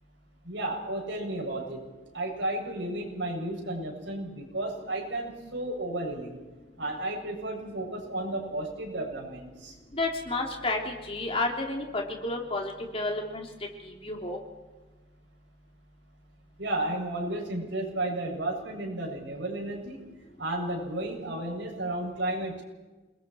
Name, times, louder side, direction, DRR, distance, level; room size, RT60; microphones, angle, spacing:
voice 1, 0.4-1.8 2.1-6.4 6.8-9.8 16.6-20.0 20.4-22.6, right 1 dB, 85° right, -2 dB, 7.3 m, -33 dB
voice 2, 9.9-13.5 13.8-14.4, left 2 dB, 30° left, 1 dB, 3.4 m, -31 dB
29.0 x 20.5 x 4.6 m, 1.2 s
head